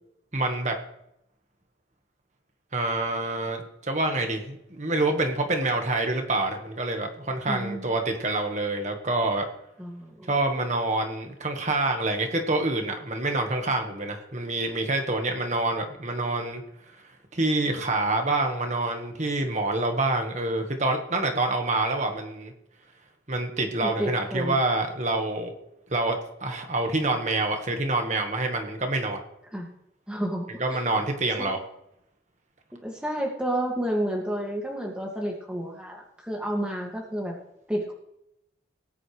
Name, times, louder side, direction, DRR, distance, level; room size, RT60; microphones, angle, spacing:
voice 1, 0.3-0.8 2.7-9.4 10.2-16.6 17.3-22.5 23.3-25.6 25.9-29.2 30.6-31.6, right 2 dB, 40° right, 4 dB, 1.5 m, -27 dB
voice 2, 7.5-7.9 9.8-10.3 23.8-24.6 29.5-29.7 30.1-30.5 31.4-31.5 32.7-37.4 37.7-37.9, right 1 dB, 5° right, -1 dB, 2.1 m, -30 dB
19.5 x 9.8 x 3.3 m, 0.81 s
head